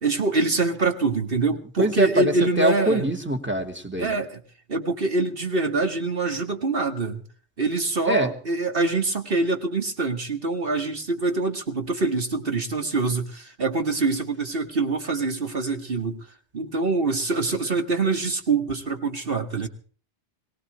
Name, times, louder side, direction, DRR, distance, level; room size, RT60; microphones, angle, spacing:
voice 1, 0.0-3.1 4.0-4.4 4.7-7.2 7.6-16.2 16.5-19.7, right 3 dB, 55° right, 5 dB, 2.2 m, -25 dB
voice 2, 1.8-4.2 8.1-8.3, right 1 dB, 10° right, 6 dB, 2.0 m, -24 dB
22.5 x 18.5 x 3.1 m, 0.41 s
omnidirectional pair, 1.1 m